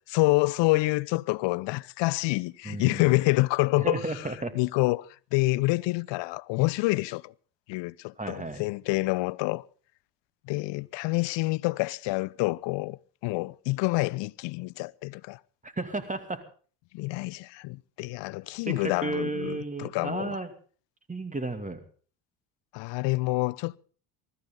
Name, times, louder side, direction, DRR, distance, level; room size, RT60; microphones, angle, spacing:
voice 1, 0.0-4.0 4.5-7.3 7.7-9.6 10.5-15.4 16.9-20.4 22.7-23.8, left 22 dB, 65° left, 0.7 m, -27 dB
voice 2, 2.6-3.1 3.8-4.5 8.2-8.6 15.6-16.4 18.6-20.5 21.1-21.8, right 2 dB, 15° right, 2.7 m, -33 dB
23.5 x 13.5 x 3.8 m
supercardioid pair, 80°, 46 cm